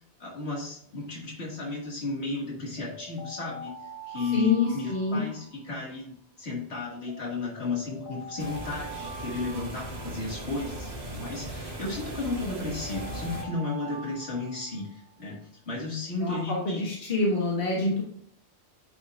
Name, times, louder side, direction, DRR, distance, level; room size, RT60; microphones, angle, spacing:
voice 1, 0.2-3.7 4.1-15.4 15.7-16.8 17.8-17.9, left 3 dB, 75° left, -2 dB, 2.2 m, -34 dB
sound 1, 2.8-6.0 7.1-10.8 12.0-15.2, right 1 dB, 30° left, 1.3 m, -44 dB
voice 2, 4.3-5.2 16.2-18.0, left 3 dB, 55° left, -3 dB, 1.6 m, -26 dB
sound 2, 8.4-13.4, right 1 dB, 55° right, 1.6 m, -38 dB
9.4 x 5.8 x 2.4 m, 0.64 s
omnidirectional pair, 1.1 m